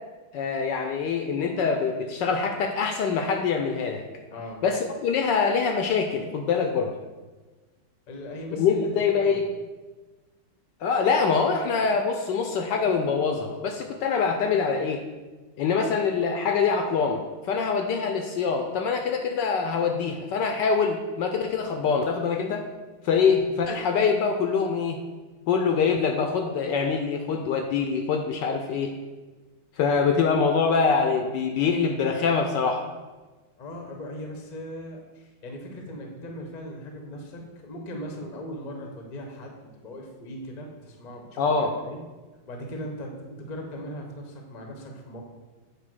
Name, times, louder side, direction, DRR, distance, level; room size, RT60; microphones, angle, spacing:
voice 1, 0.3-4.0 4.6-6.9 8.6-9.4 10.8-15.0 15.6-22.6 23.0-25.0 25.5-28.9 29.8-32.8 41.4-41.7, left 5 dB, 75° left, 5 dB, 1.1 m, -24 dB
voice 2, 4.3-4.6 8.1-9.4 33.6-42.0 42.5-45.2, equal, 45° left, 2 dB, 0.5 m, -39 dB
8.2 x 2.8 x 6.0 m, 1.3 s
omnidirectional pair, 2.2 m